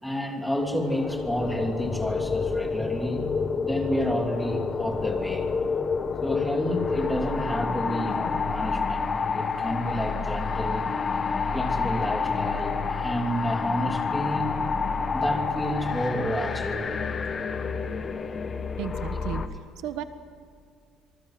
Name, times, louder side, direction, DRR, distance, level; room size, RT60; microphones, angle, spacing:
voice 1, 0.0-3.3 3.5-5.5 6.2-10.9 11.5-14.5 15.1-17.0, equal, ahead, 2 dB, 3.0 m, -30 dB
sound 1, 0.6-19.5, left 5 dB, 25° left, 1.3 m, -29 dB
voice 2, 18.8-19.4 19.8-20.0, right 11 dB, 70° right, 10 dB, 1.3 m, -33 dB
27.0 x 20.0 x 7.9 m, 2.3 s
cardioid pair, 170°, 0 cm